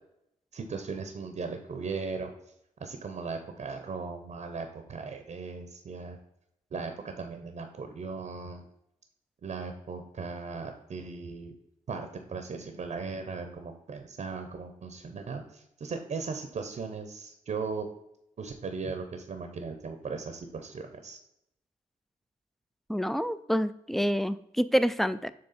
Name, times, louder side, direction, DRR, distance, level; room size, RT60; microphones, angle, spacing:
voice 1, 0.5-2.3 2.8-6.2 6.7-8.6 9.4-11.5 11.9-17.9 18.4-21.2, right 4 dB, 60° right, 6 dB, 0.7 m, -37 dB
voice 2, 22.9-25.3, equal, ahead, 14 dB, 0.3 m, -27 dB
6.7 x 3.4 x 4.1 m, 0.80 s
cardioid pair, 75°, 14 cm